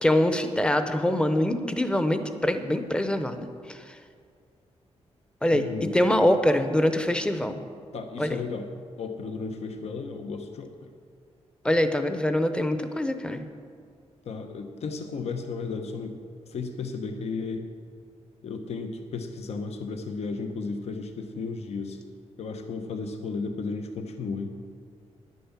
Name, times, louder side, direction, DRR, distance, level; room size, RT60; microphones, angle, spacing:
voice 1, 0.0-4.0 5.4-7.6 8.2-8.4 11.6-13.4, left 1 dB, 10° left, 8 dB, 0.7 m, -24 dB
voice 2, 5.5-6.0 7.9-8.7 9.0-10.9 14.2-16.2 16.5-17.7 18.4-22.0 22.4-24.5, left 4 dB, 65° left, 6 dB, 0.9 m, -34 dB
10.5 x 9.3 x 7.2 m, 2.2 s
wide cardioid pair, 160°, 12 cm